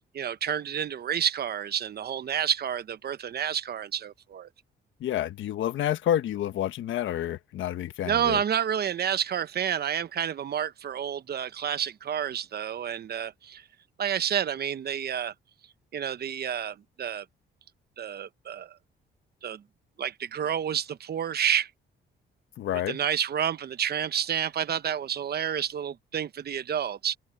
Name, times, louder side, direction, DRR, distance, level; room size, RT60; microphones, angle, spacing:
voice 1, 0.1-4.5 8.0-13.6 14.0-15.3 15.9-17.2 18.0-18.7 19.4-19.6 20.0-21.7 22.9-27.2, right 9 dB, 55° right, 1.0 m, -29 dB
voice 2, 5.0-8.4 22.6-23.0, left 11 dB, 75° left, 1.3 m, -29 dB
open air
cardioid pair, 90°, 20 cm